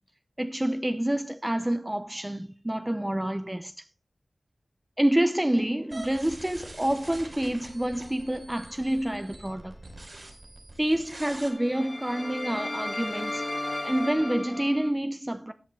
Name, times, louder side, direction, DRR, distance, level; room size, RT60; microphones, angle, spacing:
voice 1, 0.4-3.9 5.0-9.7 10.8-13.5 13.8-15.5, right 1 dB, 15° right, 0.6 m, -28 dB
sound 1, 5.9-11.5, right 2 dB, 50° right, 4.5 m, -45 dB
sound 2, 6.6-8.4 8.8-9.0 11.2-14.9, left 2 dB, 35° left, 0.7 m, -36 dB
13.5 x 9.1 x 3.4 m
wide cardioid pair, 70°, 0 cm